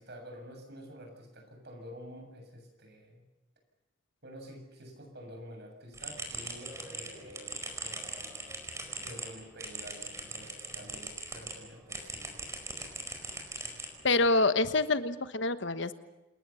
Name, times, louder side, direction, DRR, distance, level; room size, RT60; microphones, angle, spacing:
voice 1, 0.0-3.2 4.2-8.3 9.0-12.4, equal, 55° right, 3 dB, 7.4 m, -49 dB
sound 1, 5.9-11.6 11.9-14.3, right 2 dB, 15° right, 4.8 m, -41 dB
voice 2, 14.0-15.9, left 3 dB, 60° left, 11 dB, 1.2 m, -26 dB
28.0 x 20.5 x 7.2 m, 1.1 s
head